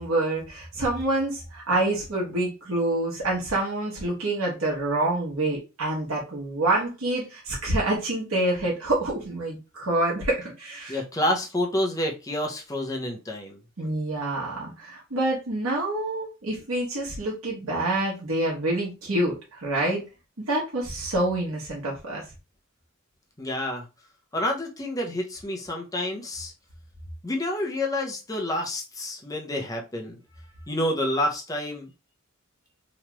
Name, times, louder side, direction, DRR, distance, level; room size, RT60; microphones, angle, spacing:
voice 1, 0.0-11.0 13.8-20.0 20.4-22.2, right 2 dB, 85° right, -4 dB, 1.0 m, -27 dB
voice 2, 10.9-13.6 23.4-23.9 24.3-26.5 27.2-30.2 30.7-31.9, left 1 dB, 15° left, 1 dB, 0.6 m, -28 dB
3.0 x 2.3 x 3.0 m, 0.29 s
head